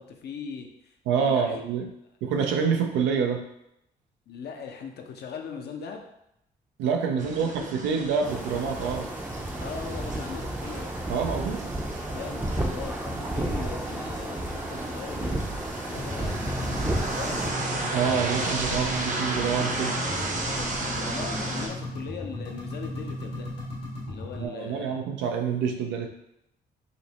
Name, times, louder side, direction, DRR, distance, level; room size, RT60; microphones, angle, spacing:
voice 1, 0.0-1.6 4.3-6.0 7.2-7.3 7.6-7.7 9.6-10.9 12.1-15.4 15.9-17.7 18.4-19.1 19.8-23.5 24.1-25.1, left 6 dB, 65° left, 4 dB, 0.6 m, -40 dB
voice 2, 1.1-1.9 2.2-3.4 6.8-9.1 11.1-11.6 17.9-19.9 21.1-21.2 24.4-26.1, right 6 dB, 85° right, 4 dB, 0.5 m, -27 dB
sound 1, 7.2-21.7, right 2 dB, 45° right, 0.8 m, -34 dB
sound 2, 8.2-17.5, right 1 dB, 10° right, 0.5 m, -32 dB
sound 3, 16.0-24.5, left 1 dB, 85° left, 1.5 m, -36 dB
5.1 x 2.0 x 2.9 m, 0.80 s
supercardioid pair, 55°, 18 cm